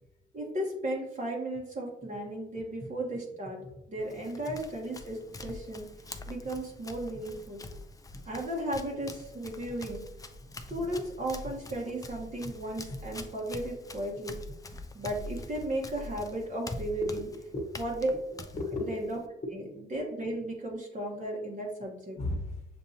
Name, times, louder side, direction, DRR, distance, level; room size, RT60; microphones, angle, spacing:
voice 1, 0.3-3.6 3.9-5.9 6.3-7.6 8.2-10.0 10.7-14.4 14.9-17.3 17.8-18.1 18.8-19.2 19.5-19.6 19.9-22.2, right 1 dB, 40° right, -2 dB, 1.2 m, -35 dB
Run, 4.0-19.3, left 2 dB, 15° left, 0.5 m, -45 dB
voice 2, 17.0-17.7 18.0-19.0 19.4-19.9 22.2-22.6, left 2 dB, 35° left, 2 dB, 1.0 m, -36 dB
7.0 x 2.7 x 2.8 m, 0.87 s
cardioid pair, 90°, 20 cm